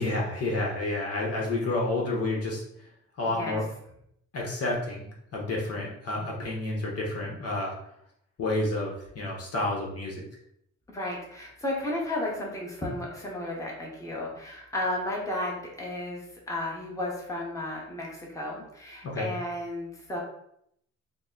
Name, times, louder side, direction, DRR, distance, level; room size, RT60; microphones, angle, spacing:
voice 1, 0.0-2.6 3.2-3.6 4.3-7.7 8.4-10.3 19.0-19.3, left 2 dB, 50° left, -2 dB, 1.1 m, -30 dB
voice 2, 3.3-3.6 10.9-20.2, left 1 dB, 10° left, -3 dB, 1.2 m, -33 dB
3.8 x 2.2 x 3.9 m, 0.73 s
cardioid pair, 90°, 30 cm